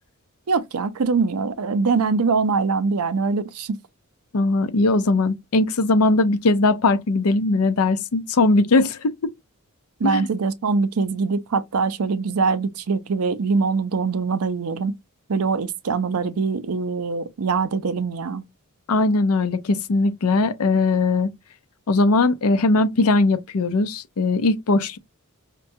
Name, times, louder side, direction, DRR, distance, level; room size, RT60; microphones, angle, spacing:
voice 1, 0.5-3.8 10.0-14.9 15.3-18.4, right 4 dB, 85° right, 0.5 m, -23 dB
voice 2, 4.3-9.3 10.0-10.3 18.9-21.3 21.9-25.0, left 3 dB, 85° left, 0.6 m, -20 dB
5.3 x 2.2 x 2.6 m
head